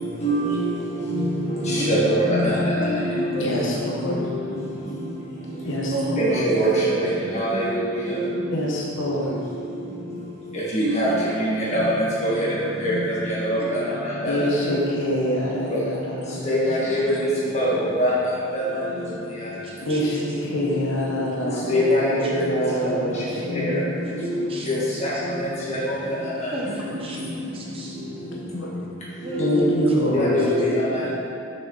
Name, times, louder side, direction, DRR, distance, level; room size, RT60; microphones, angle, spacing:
voice 1, 0.0-4.6 4.9-5.1 5.5-8.5 9.7-9.8 10.5-14.7 15.7-15.8 16.4-19.0 19.4-19.5 20.2-20.7 21.4-22.5 22.7-23.8 24.1-26.5 29.3-31.1, equal, 30° left, -8 dB, 1.7 m, -24 dB
voice 2, 1.7-2.2 2.6-3.8 5.9-6.4 7.3-7.6 8.1-8.2 11.0-11.2 13.6-13.9 14.2-14.3 17.0-17.3 19.6-20.2 22.2-22.3 24.0-25.3 26.5-28.0 29.2-30.5, equal, 25° right, -3 dB, 0.7 m, -34 dB
voice 3, 3.4-4.3 5.7-6.5 8.5-9.4 14.2-17.1 19.8-23.9 28.5-28.7 29.4-30.5, equal, 55° left, -3 dB, 1.0 m, -26 dB
6.4 x 6.4 x 3.9 m, 2.4 s
head